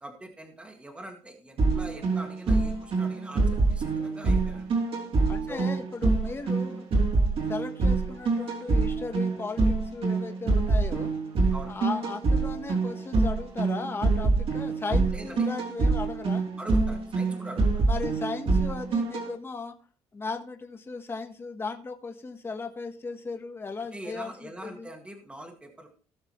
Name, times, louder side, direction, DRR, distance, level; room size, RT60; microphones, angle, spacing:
voice 1, 0.0-4.7 5.5-5.8 11.5-11.8 15.1-15.5 16.6-17.9 23.9-25.9, right 1 dB, 10° right, 3 dB, 1.9 m, -43 dB
sound 1, 1.6-19.3, right 3 dB, 50° right, 3.2 m, -25 dB
voice 2, 5.3-6.8 7.5-11.1 11.7-16.5 17.8-19.7 20.1-24.9, left 4 dB, 20° left, 5 dB, 1.3 m, -36 dB
17.5 x 6.6 x 3.2 m, 0.39 s
cardioid pair, 165°, 12 cm